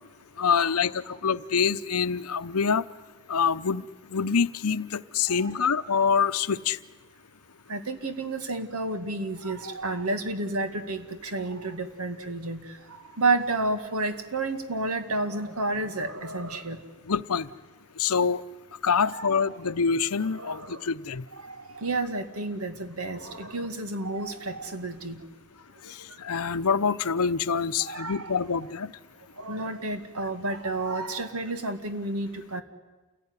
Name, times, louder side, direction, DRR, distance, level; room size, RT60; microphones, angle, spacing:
voice 1, 0.4-2.8 3.3-3.8 4.1-6.8 17.1-17.5 18.0-18.4 18.8-21.2 26.2-28.9, left 6 dB, 80° left, 13 dB, 0.8 m, -25 dB
voice 2, 7.7-12.8 13.2-16.8 19.0-19.4 20.2-20.8 21.3-25.2 27.8-28.4 29.4-32.6, right 2 dB, 75° right, 8 dB, 2.1 m, -31 dB
28.0 x 17.5 x 9.8 m, 1.2 s
head